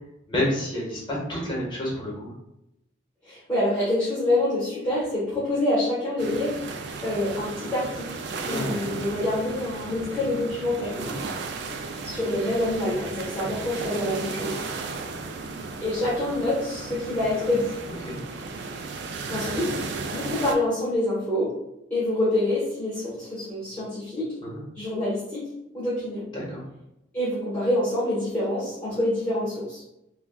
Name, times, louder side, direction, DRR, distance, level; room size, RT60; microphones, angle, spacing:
voice 1, 0.3-2.3 8.4-9.0 10.9-11.1 18.0-18.1 24.4-24.6 26.3-26.6, left 1 dB, 25° left, -4 dB, 0.9 m, -29 dB
voice 2, 3.2-6.6 7.0-8.2 8.5-11.0 12.0-14.6 14.8-15.0 15.8-17.7 19.3-19.8 20.1-21.6 21.9-24.3 24.7-26.3 27.1-29.8, left 1 dB, 10° left, -11 dB, 1.1 m, -26 dB
sound 1, 6.2-20.6, right 4 dB, 60° right, 0.3 m, -35 dB
3.6 x 2.2 x 2.3 m, 0.87 s
head